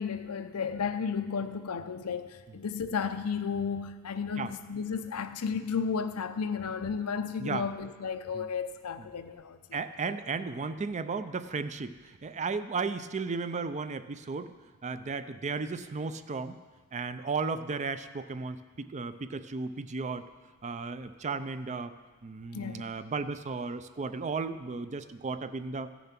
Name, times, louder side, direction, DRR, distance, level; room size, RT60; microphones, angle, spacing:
voice 1, 0.0-9.6 22.5-22.8, left 6 dB, 90° left, 0.6 m, -33 dB
voice 2, 9.7-14.5 14.8-16.6 16.9-20.3 20.6-22.0 22.2-25.9, right 4 dB, 30° right, 0.5 m, -34 dB
14.5 x 7.0 x 5.9 m
head